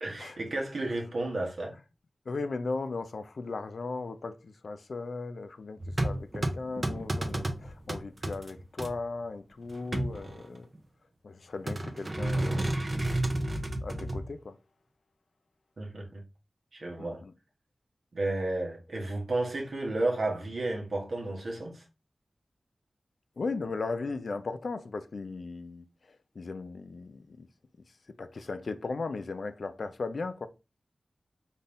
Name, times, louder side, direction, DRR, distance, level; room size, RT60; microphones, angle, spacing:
voice 1, 0.0-1.8 15.8-16.2 16.7-17.2 18.1-21.8, right 2 dB, 75° right, 1.2 m, -32 dB
voice 2, 2.3-10.7 11.2-12.7 13.8-14.6 17.0-17.3 23.4-25.9 26.4-27.5 28.2-30.5, left 3 dB, 75° left, 0.4 m, -37 dB
sound 1, 5.8-8.9 9.7-10.8 11.7-14.3, right 1 dB, 40° right, 0.8 m, -31 dB
4.0 x 2.7 x 3.5 m
wide cardioid pair, 65°, 0 cm